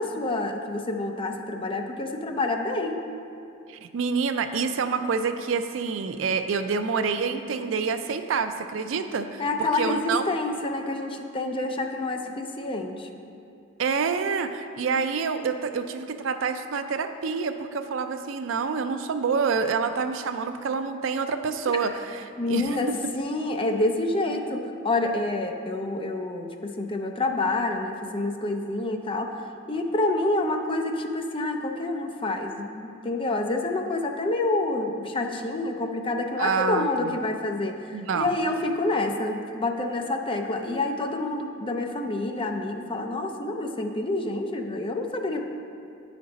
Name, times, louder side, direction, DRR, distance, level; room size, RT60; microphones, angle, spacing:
voice 1, 0.0-3.0 9.4-13.1 22.4-22.9 23.2-29.3 29.7-45.4, left 2 dB, 25° left, 4 dB, 0.5 m, -28 dB
voice 2, 3.7-10.2 13.8-23.0 36.4-37.2 37.9-38.3, right 5 dB, 70° right, 8 dB, 0.4 m, -27 dB
9.4 x 5.2 x 4.0 m, 2.5 s
head